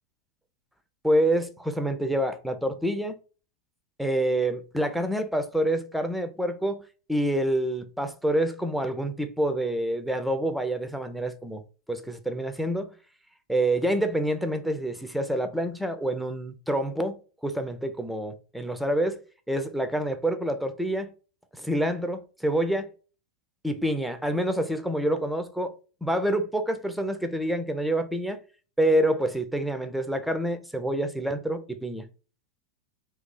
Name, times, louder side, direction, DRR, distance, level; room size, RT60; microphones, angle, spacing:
voice 1, 1.0-3.2 4.0-6.8 7.1-11.6 11.9-12.9 13.5-19.2 19.5-21.1 21.5-22.9 23.6-28.4 28.8-32.1, right 1 dB, ahead, 0.4 m, -27 dB
2.7 x 2.3 x 3.7 m
figure-of-eight pair, 90°, 0 cm